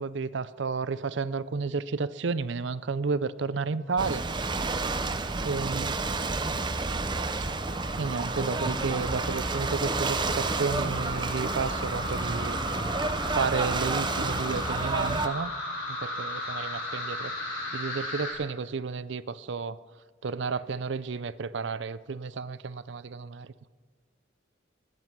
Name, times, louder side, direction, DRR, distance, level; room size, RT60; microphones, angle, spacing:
voice 1, 0.0-4.2 5.4-6.0 8.0-12.9 13.2-15.5 16.0-17.5 17.7-19.8 20.2-23.5, right 4 dB, 65° right, 16 dB, 0.5 m, -32 dB
Ocean / Boat Water vehicle, 4.0-15.3, right 3 dB, 25° right, 0.7 m, -30 dB
sound 1, 7.4-18.3, left 1 dB, 60° left, 5.1 m, -36 dB
20.0 x 9.3 x 5.9 m, 1.5 s
head